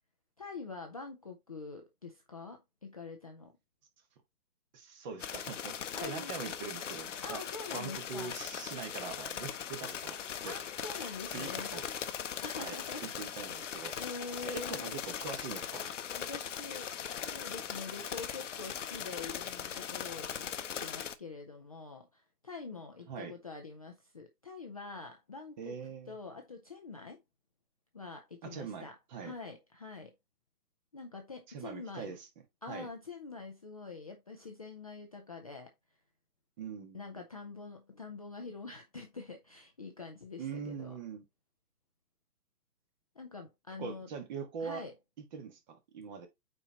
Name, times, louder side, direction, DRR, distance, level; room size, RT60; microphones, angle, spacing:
voice 1, 0.4-3.5 5.9-6.3 7.2-8.3 10.5-11.7 12.4-13.1 13.6-15.0 16.3-16.9 17.2-20.5 20.8-25.8 26.1-27.2 27.9-29.0 29.2-30.1 30.9-32.2 32.6-35.7 36.9-41.0 43.2-44.1 44.6-44.9, left 4 dB, 25° left, 0.5 m, -45 dB
voice 2, 4.7-7.4 7.7-10.2 10.4-10.6 11.0-11.8 12.6-13.9 14.4-15.9 23.1-23.3 25.6-26.2 28.4-29.3 31.5-32.3 32.7-32.9 36.6-37.2 40.4-41.2 43.8-44.8 45.3-46.3, right 6 dB, 25° right, 1.5 m, -42 dB
sound 1, 5.2-21.1, left 8 dB, 50° left, 0.9 m, -40 dB
8.6 x 4.4 x 2.9 m
hypercardioid pair, 145°, 48 cm